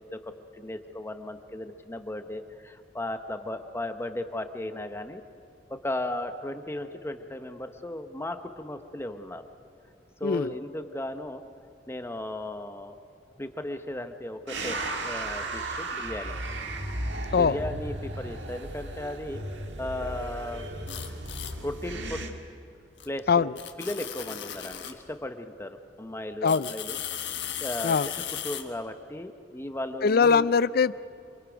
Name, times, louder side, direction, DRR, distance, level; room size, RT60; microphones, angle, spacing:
voice 1, 0.1-5.2 5.7-9.4 10.2-11.4 11.9-12.9 13.4-16.4 17.3-19.4 19.8-21.2 21.6-22.4 23.0-27.0 27.6-30.6, left 1 dB, 15° left, 0.9 m, -36 dB
sound 1, 14.5-22.3, right 2 dB, 90° right, 1.8 m, -35 dB
sound 2, 20.9-21.5 23.0-23.1 23.6-25.0 26.4-28.6, left 10 dB, 85° left, 1.5 m, -36 dB
voice 2, 26.4-26.7 27.8-28.1 30.0-30.9, left 5 dB, 55° left, 0.4 m, -22 dB
26.5 x 22.5 x 5.1 m
head